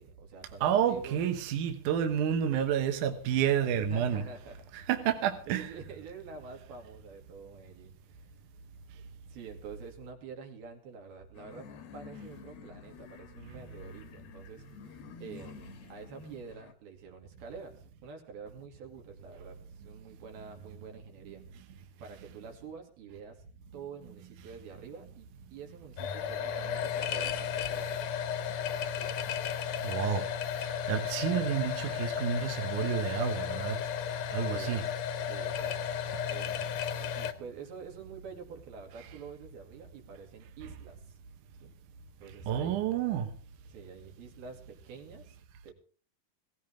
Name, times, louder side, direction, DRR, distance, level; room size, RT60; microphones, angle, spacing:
voice 1, 0.0-1.2 3.7-4.8 5.5-8.3 9.3-11.7 11.9-14.6 14.9-23.5 23.7-28.0 34.3-34.9 35.2-35.9 36.3-41.2 41.6-41.7 42.2-42.8 43.7-45.4 45.6-45.7, right 5 dB, 80° right, 4.5 m, -47 dB
voice 2, 0.6-4.3 4.7-5.7 29.8-30.3 30.6-33.8 34.3-34.9 39.0-39.1 42.5-43.3, right 9 dB, 65° right, 2.5 m, -30 dB
sound 1, 11.4-16.7, left 6 dB, 85° left, 3.4 m, -50 dB
sound 2, 26.0-37.3, left 8 dB, 65° left, 1.8 m, -34 dB
17.0 x 16.0 x 3.7 m
omnidirectional pair, 4.3 m